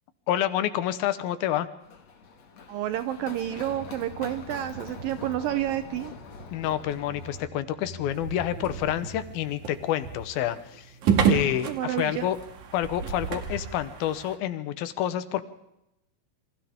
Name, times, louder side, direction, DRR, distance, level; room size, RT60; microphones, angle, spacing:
voice 1, 0.3-1.7 6.5-10.9 11.3-12.4 12.7-15.4, left 12 dB, 80° left, 12 dB, 2.9 m, -28 dB
Run, 1.8-7.4, left 5 dB, 50° left, 2.9 m, -44 dB
voice 2, 2.7-6.1 11.7-12.3, right 12 dB, 75° right, 10 dB, 2.5 m, -30 dB
sound 1, 3.6-10.3, right 1 dB, 35° right, 6.2 m, -46 dB
sound 2, 8.1-14.4, right 7 dB, 60° right, 3.2 m, -30 dB
28.5 x 25.5 x 3.6 m, 0.86 s
omnidirectional pair, 4.2 m